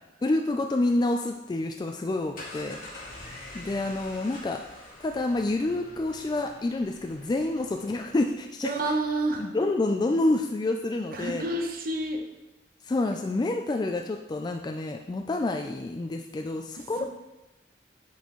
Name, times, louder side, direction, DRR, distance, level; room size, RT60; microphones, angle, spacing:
voice 1, 0.2-2.8 3.1-3.3 3.5-4.6 5.0-8.7 9.4-11.4 12.8-17.0, left 2 dB, 25° left, 4 dB, 0.3 m, -28 dB
sound 1, 2.2-8.4, left 2 dB, 50° left, 2.2 m, -46 dB
voice 2, 8.6-9.5 11.1-12.2 17.0-17.1, right 2 dB, 55° right, 3 dB, 0.9 m, -29 dB
10.5 x 4.2 x 3.0 m, 0.99 s
head